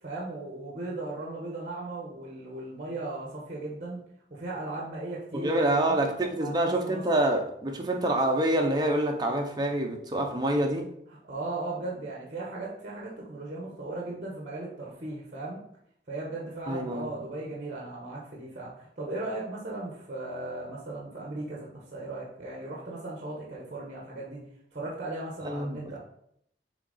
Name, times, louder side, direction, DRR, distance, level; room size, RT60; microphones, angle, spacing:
voice 1, 0.0-4.0 4.3-6.0 6.4-7.0 11.3-15.6 16.1-24.4 24.7-26.0, right 2 dB, 40° right, -3 dB, 1.3 m, -37 dB
voice 2, 5.3-10.9 16.7-17.1 25.4-26.0, right 1 dB, 25° right, 2 dB, 0.7 m, -27 dB
6.9 x 3.6 x 4.1 m, 0.71 s
head